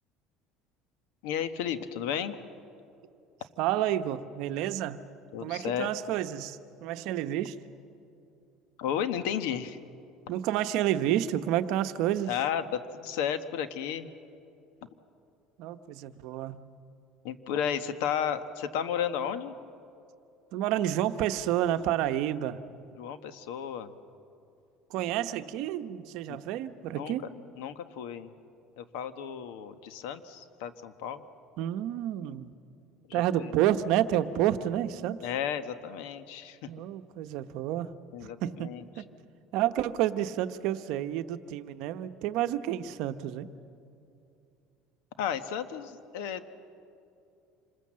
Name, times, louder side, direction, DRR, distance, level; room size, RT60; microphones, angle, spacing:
voice 1, 1.2-2.4 5.3-5.9 8.8-9.8 12.3-14.1 17.2-19.5 23.0-23.9 26.3-26.4 26.9-27.2 27.6-28.3 28.8-31.2 33.0-33.5 35.2-36.7 38.1-39.0 45.2-46.4, left 8 dB, 85° left, 11 dB, 1.2 m, -33 dB
voice 2, 3.6-5.0 5.4-7.6 10.3-12.3 15.6-16.7 20.5-22.6 24.9-27.2 31.6-32.5 33.1-35.2 36.7-37.9 38.2-38.7 39.0-39.1 39.5-43.5, right 12 dB, 70° right, 10 dB, 0.9 m, -29 dB
27.0 x 20.5 x 7.6 m, 2.6 s
cardioid pair, 130°, 0 cm